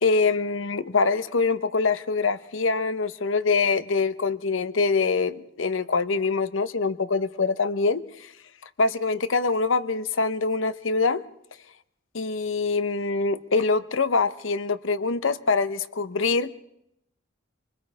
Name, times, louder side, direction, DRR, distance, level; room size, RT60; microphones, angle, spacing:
voice 1, 0.0-8.0 8.8-11.2 12.1-16.5, left 4 dB, 80° left, 14 dB, 0.9 m, -24 dB
26.5 x 21.0 x 4.8 m, 0.79 s
head